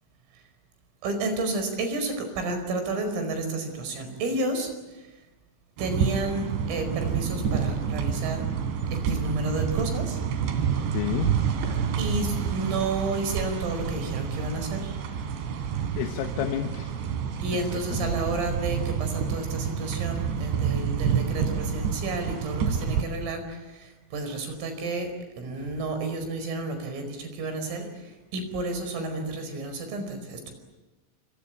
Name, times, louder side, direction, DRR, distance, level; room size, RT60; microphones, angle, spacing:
voice 1, 1.0-5.1 5.8-8.5 8.9-10.2 12.0-15.0 17.4-30.5, right 2 dB, 90° right, 7 dB, 7.5 m, -31 dB
sound 1, 5.8-23.0, right 7 dB, 65° right, 4.7 m, -28 dB
voice 2, 10.9-11.4 16.0-16.9 17.5-18.1, left 10 dB, 85° left, 5 dB, 3.8 m, -30 dB
27.0 x 25.5 x 8.5 m, 1.1 s
omnidirectional pair, 5.7 m